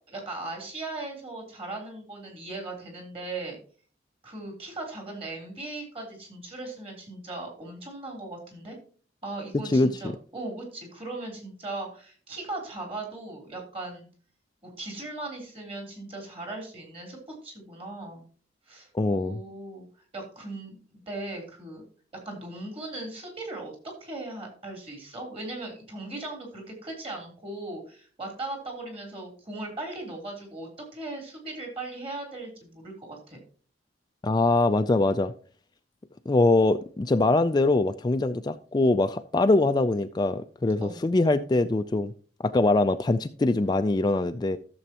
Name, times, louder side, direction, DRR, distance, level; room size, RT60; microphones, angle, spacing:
voice 1, 0.0-3.6 4.2-8.8 9.2-14.1 14.6-17.2 17.4-18.2 18.7-19.8 20.1-20.8 21.1-21.8 22.3-33.4 40.8-41.0, right 2 dB, 35° right, 3.5 m, -38 dB
voice 2, 9.5-10.2 18.9-19.4 34.2-35.3 36.3-42.1 42.4-44.6, left 2 dB, 25° left, 0.3 m, -23 dB
14.5 x 7.1 x 2.9 m
head